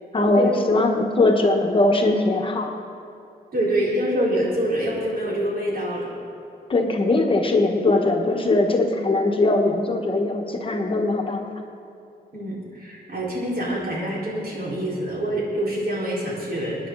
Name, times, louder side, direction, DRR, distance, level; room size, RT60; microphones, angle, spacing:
voice 1, 0.1-2.7 6.7-11.5, left 2 dB, 35° left, 2 dB, 1.1 m, -20 dB
voice 2, 3.5-6.1 12.3-16.8, right 1 dB, 70° right, -6 dB, 4.3 m, -25 dB
25.0 x 9.8 x 3.9 m, 2.6 s
wide cardioid pair, 155°, 16 cm